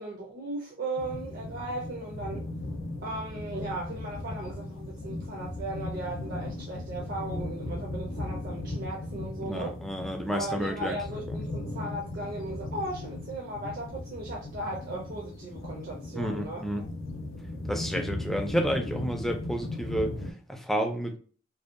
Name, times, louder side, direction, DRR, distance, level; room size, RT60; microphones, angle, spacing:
voice 1, 0.0-2.4 3.0-9.8 10.3-16.8, right 2 dB, 50° right, 0.5 m, -37 dB
sound 1, 1.0-20.3, left 2 dB, 85° left, 0.4 m, -37 dB
voice 2, 9.4-11.0 11.3-11.4 16.1-16.9 17.7-21.2, equal, ahead, 0.3 m, -31 dB
2.7 x 2.1 x 2.4 m
head